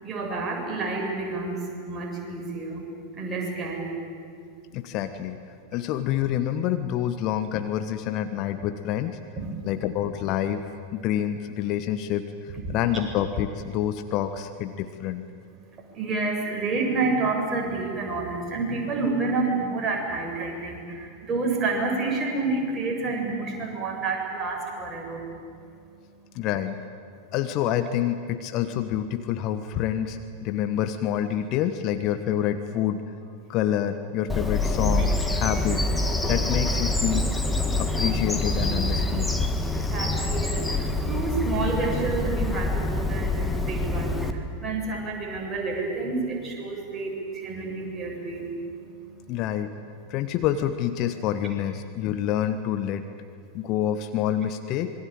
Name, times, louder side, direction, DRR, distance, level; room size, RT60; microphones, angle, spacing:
voice 1, 0.0-2.8 3.1-3.9 9.4-9.8 12.7-12.8 15.4-26.5 27.1-27.4 33.4-33.6 39.5-49.4, right 3 dB, 20° right, 0 dB, 7.1 m, -30 dB
voice 2, 4.7-5.4 5.7-9.2 9.6-10.6 10.9-15.2 26.3-26.8 27.3-33.0 33.5-35.8 36.3-37.3 37.8-39.3 49.3-49.7 50.1-53.0 53.5-54.9, left 10 dB, 40° left, 9 dB, 1.3 m, -27 dB
Bird vocalization bird call bird song, 34.3-44.3, left 2 dB, 5° left, 2.0 m, -26 dB
26.5 x 22.5 x 9.0 m, 2.4 s
figure-of-eight pair, 90°, 0 cm